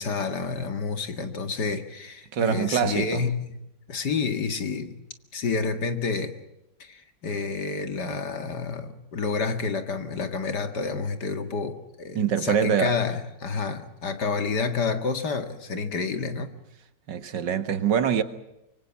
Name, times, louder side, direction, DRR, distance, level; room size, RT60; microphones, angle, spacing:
voice 1, 0.0-3.6 3.9-4.9 5.3-6.3 6.8-16.5, left 4 dB, 70° left, 2.6 m, -29 dB
voice 2, 2.3-3.3 12.1-13.0 17.1-18.2, right 8 dB, 85° right, 2.2 m, -24 dB
25.5 x 24.5 x 7.4 m
omnidirectional pair, 1.9 m